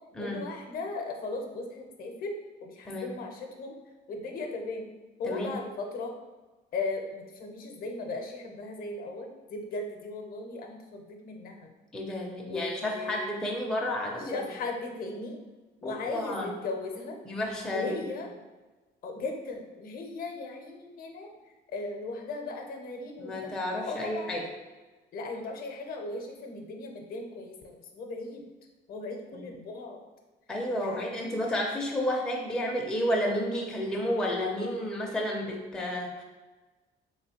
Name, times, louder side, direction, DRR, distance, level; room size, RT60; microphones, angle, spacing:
voice 1, 0.2-2.3 2.6-3.8 4.1-4.9 5.2-6.1 6.7-11.7 12.4-13.3 14.2-15.4 15.8-17.2 17.7-18.3 19.0-21.3 21.7-23.5 23.8-24.3 25.1-28.4 28.9-30.0 30.8-31.4, left 3 dB, 50° left, 3 dB, 0.6 m, -37 dB
voice 2, 5.3-5.6 11.9-14.5 15.8-16.5 17.3-18.0 23.2-24.5 29.3-29.4 30.5-36.2, left 1 dB, 5° left, -2 dB, 0.4 m, -31 dB
3.7 x 3.1 x 2.8 m, 1.2 s
cardioid pair, 155°, 19 cm